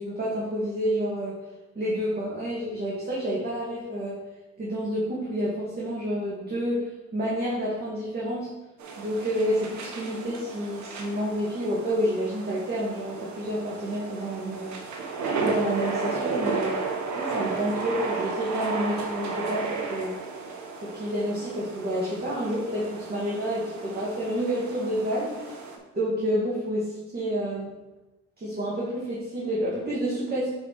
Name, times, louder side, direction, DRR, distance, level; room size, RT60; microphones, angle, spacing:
voice 1, 0.0-1.4 1.8-4.2 4.6-8.5 9.0-14.8 15.4-16.8 17.1-20.2 20.8-25.6 25.9-27.7 28.4-30.5, equal, 30° right, -7 dB, 2.1 m, -29 dB
sound 1, 8.8-25.8, right 4 dB, 70° right, 1.4 m, -33 dB
7.7 x 4.5 x 4.7 m, 1.1 s
cardioid pair, 90°, 30 cm